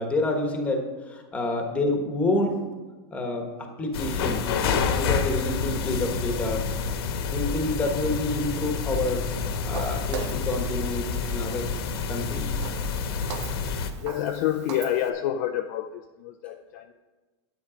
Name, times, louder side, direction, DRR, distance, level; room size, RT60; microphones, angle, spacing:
voice 1, 0.0-2.6 3.1-4.4 4.9-6.7 7.3-9.3 9.6-11.7 12.1-12.6, left 2 dB, 10° left, 3 dB, 1.2 m, -28 dB
sound 1, 3.9-13.9, left 5 dB, 60° left, 1.2 m, -28 dB
Walk footsteps, 9.7-15.1, right 6 dB, 80° right, 1.3 m, -40 dB
voice 2, 14.0-16.9, left 11 dB, 40° left, 6 dB, 0.4 m, -28 dB
10.5 x 9.3 x 5.0 m, 1.3 s
supercardioid pair, 170°, 14 cm